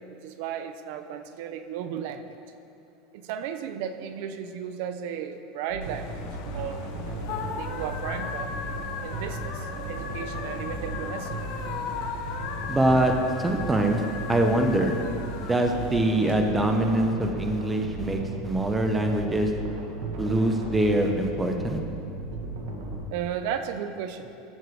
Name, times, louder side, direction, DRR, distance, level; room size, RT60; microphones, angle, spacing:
voice 1, 0.0-2.4 3.1-6.3 6.5-6.9 7.5-8.5 9.0-11.4 23.1-24.3, right 8 dB, 60° right, 9 dB, 0.5 m, -35 dB
sound 1, 5.7-23.0, right 2 dB, 90° right, 1.5 m, -35 dB
sound 2, 5.8-16.3, left 6 dB, 60° left, 0.7 m, -37 dB
voice 2, 12.7-13.1 13.4-14.0 14.3-15.0 15.4-19.5 20.2-21.8, right 1 dB, 10° right, 4 dB, 0.6 m, -24 dB
14.0 x 6.5 x 3.1 m, 2.8 s
supercardioid pair, 160°, 0 cm